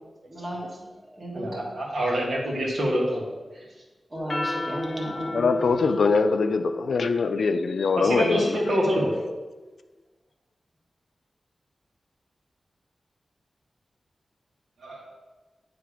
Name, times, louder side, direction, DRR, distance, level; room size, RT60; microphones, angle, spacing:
voice 1, 0.3-1.6 4.1-5.5, right 1 dB, 25° right, -2 dB, 1.4 m, -34 dB
voice 2, 1.3-3.3 8.0-9.2 14.8-15.1, equal, 75° right, -3 dB, 1.8 m, -26 dB
sound 1, 4.2-8.9, left 2 dB, 35° left, 0.8 m, -34 dB
voice 3, 5.3-8.6, left 4 dB, 85° left, 9 dB, 0.4 m, -23 dB
8.7 x 3.3 x 5.0 m, 1.2 s
wide cardioid pair, 130°, 0 cm